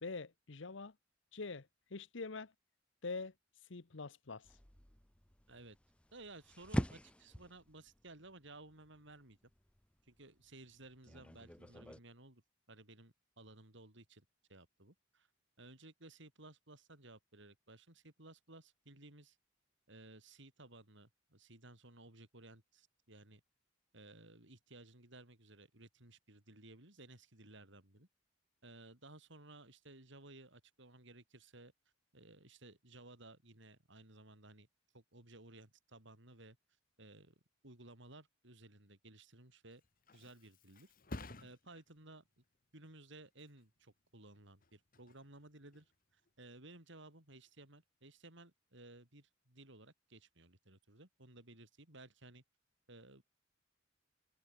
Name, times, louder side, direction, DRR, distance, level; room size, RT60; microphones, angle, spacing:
voice 1, 0.0-0.9 1.3-2.5 3.0-3.3 3.7-4.5, left 4 dB, 70° left, 1.0 m, -44 dB
sound 1, 4.4-12.0, equal, 5° left, 0.8 m, -45 dB
voice 2, 6.1-9.5 10.0-12.4 12.7-15.3 15.6-19.4 19.9-23.4 23.9-28.1 28.6-31.7 32.1-34.7 34.9-36.6 37.0-37.3 37.6-39.8 40.1-40.9 41.4-42.4 42.7-52.4 52.9-53.2, right 2 dB, 70° right, 6.2 m, -57 dB
Thump thud, 39.5-47.0 47.4-47.8, left 2 dB, 50° left, 2.1 m, -55 dB
head